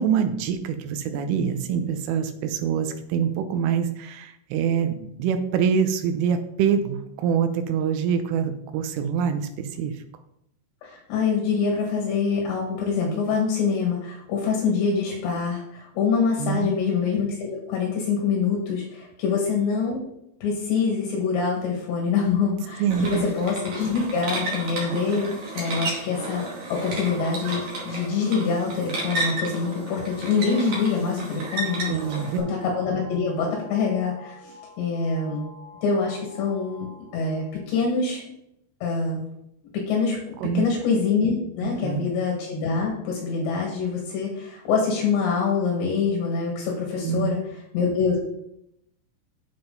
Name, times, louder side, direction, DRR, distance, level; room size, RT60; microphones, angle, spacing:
voice 1, 0.0-9.9 16.4-16.7 22.8-23.3 31.9-32.4 40.4-40.7 41.6-42.1 47.0-47.3, right 7 dB, 80° right, 8 dB, 3.3 m, -25 dB
voice 2, 10.8-20.0 20.4-32.0 32.4-35.5 35.8-36.9 37.1-38.2 38.8-39.2 39.7-40.2 40.5-47.4 47.7-48.2, left 5 dB, 65° left, -1 dB, 3.8 m, -25 dB
sound 1, 22.9-32.4, right 2 dB, 45° right, 3.1 m, -32 dB
sound 2, 30.1-37.6, left 2 dB, 50° left, 1.3 m, -48 dB
9.0 x 7.4 x 3.9 m, 0.76 s
omnidirectional pair, 5.9 m